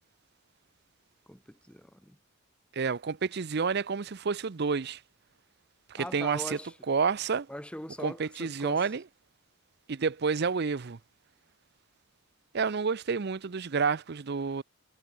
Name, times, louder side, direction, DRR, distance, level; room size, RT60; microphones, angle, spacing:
voice 1, 1.3-2.2 6.0-6.7 7.5-8.9, left 1 dB, 5° left, 2.6 m, -41 dB
voice 2, 2.7-5.0 5.9-6.6 6.9-7.5 8.0-9.0 9.9-11.0 12.5-14.6, right 5 dB, 50° right, 0.6 m, -29 dB
head